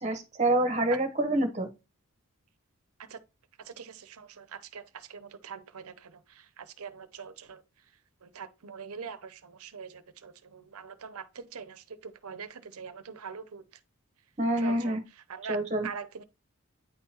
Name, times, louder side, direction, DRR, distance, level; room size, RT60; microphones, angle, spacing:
voice 1, 0.0-1.7 14.4-15.0 15.5-15.9, right 1 dB, 30° right, 1.0 m, -27 dB
voice 2, 3.6-7.6 8.2-13.6 14.6-15.0 15.3-16.2, right 6 dB, 80° right, 0.7 m, -43 dB
9.1 x 3.7 x 2.9 m
head